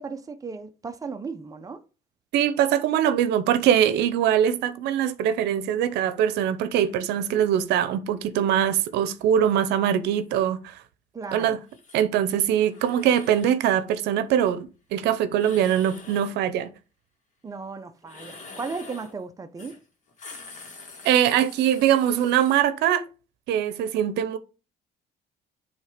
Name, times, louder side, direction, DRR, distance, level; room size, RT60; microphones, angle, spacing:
voice 1, 0.0-1.8 11.1-11.6 17.4-19.8, right 4 dB, 20° right, 0.8 m, -36 dB
voice 2, 2.3-10.8 11.3-11.6 11.9-16.7 21.0-23.1 23.5-24.4, right 10 dB, 85° right, 0.7 m, -22 dB
sound 1, 11.7-12.0 12.7-13.6 15.3-16.4 18.0-19.2 19.6-19.8 20.1-22.6, left 3 dB, 45° left, 2.0 m, -45 dB
8.0 x 3.3 x 5.1 m
cardioid pair, 110°, 17 cm